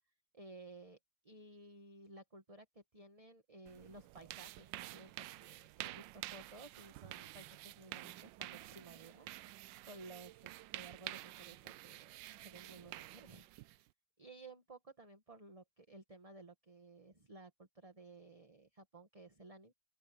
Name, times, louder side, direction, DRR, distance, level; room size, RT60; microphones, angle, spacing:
voice 1, 0.3-13.9 14.2-19.7, right 2 dB, 20° right, 1.4 m, -56 dB
sound 1, 3.7-13.9, right 16 dB, 75° right, 1.1 m, -50 dB
open air
omnidirectional pair, 2.4 m